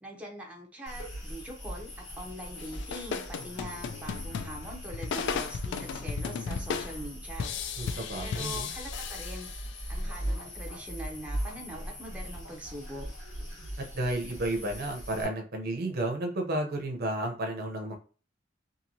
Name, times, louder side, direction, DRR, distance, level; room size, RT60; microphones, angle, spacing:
voice 1, 0.0-7.5 8.2-9.5 9.9-13.1, equal, 5° right, -1 dB, 0.6 m, -43 dB
sound 1, 0.9-15.2, equal, 85° left, 1.6 m, -40 dB
sound 2, 2.6-10.0, left 6 dB, 65° left, 0.3 m, -36 dB
voice 2, 7.8-8.7 13.8-18.0, right 1 dB, 50° right, 3 dB, 0.6 m, -32 dB
2.9 x 2.6 x 2.6 m, 0.37 s
head